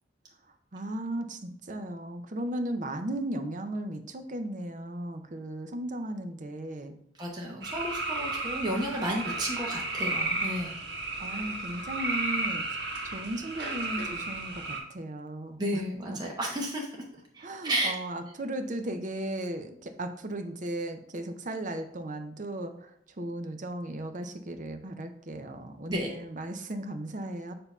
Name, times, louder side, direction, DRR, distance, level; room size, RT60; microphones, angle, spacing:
voice 1, 0.7-7.0 11.2-12.7 13.0-15.8 16.1-16.2 17.4-27.5, right 1 dB, 45° right, 7 dB, 0.6 m, -36 dB
voice 2, 7.2-10.8 15.6-16.9 17.3-17.9 25.9-26.1, right 1 dB, 25° right, -2 dB, 0.9 m, -32 dB
sound 1, 7.6-14.8, right 2 dB, 70° right, 1.3 m, -33 dB
7.1 x 2.8 x 5.4 m, 0.68 s
head